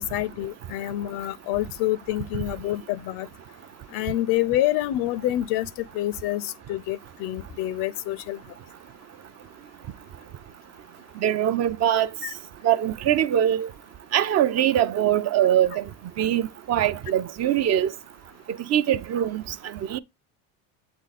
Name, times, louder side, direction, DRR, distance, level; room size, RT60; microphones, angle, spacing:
voice 1, 0.0-3.3 3.9-8.4 12.2-12.3, left 14 dB, 70° left, 0.5 m, -27 dB
voice 2, 11.2-12.1 12.6-13.7 14.1-15.8 16.2-17.9 18.7-19.4 19.9-20.0, right 11 dB, 40° right, 0.5 m, -22 dB
7.9 x 3.8 x 4.0 m
supercardioid pair, 110°, 41 cm